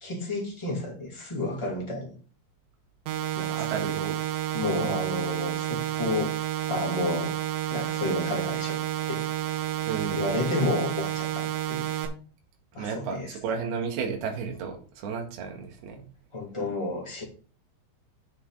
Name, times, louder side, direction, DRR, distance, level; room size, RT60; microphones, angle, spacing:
voice 1, 0.0-2.1 3.3-4.0 4.5-6.3 6.7-7.4 7.7-8.8 9.1-9.2 10.1-11.9 12.7-13.3 16.3-17.2, left 2 dB, 15° left, -3 dB, 0.8 m, -31 dB
sound 1, 3.1-12.1, right 13 dB, 90° right, 3.9 m, -30 dB
voice 2, 3.5-4.2 4.8-5.0 9.8-10.3 12.7-16.0, right 6 dB, 60° right, 2 dB, 3.4 m, -33 dB
8.7 x 7.4 x 4.0 m, 0.39 s
omnidirectional pair, 5.5 m